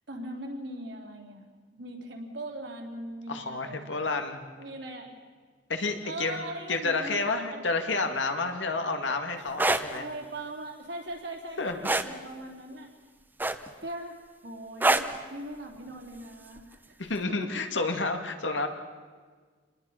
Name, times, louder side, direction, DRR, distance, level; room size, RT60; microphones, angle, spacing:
voice 1, 0.1-1.5 1.7-4.1 4.6-5.2 6.0-7.7 9.9-12.9 13.8-17.0 17.3-17.5, right 1 dB, 70° right, 1 dB, 3.4 m, -40 dB
voice 2, 3.3-4.4 5.7-6.4 6.7-10.0 11.6-11.9 17.0-18.7, left 3 dB, 85° left, 5 dB, 2.0 m, -30 dB
sound 1, 9.5-9.8 11.8-12.1 13.4-13.8 14.8-15.2 16.6-16.7, right 2 dB, 10° right, 0.7 m, -24 dB
26.5 x 20.0 x 5.7 m, 1.5 s
head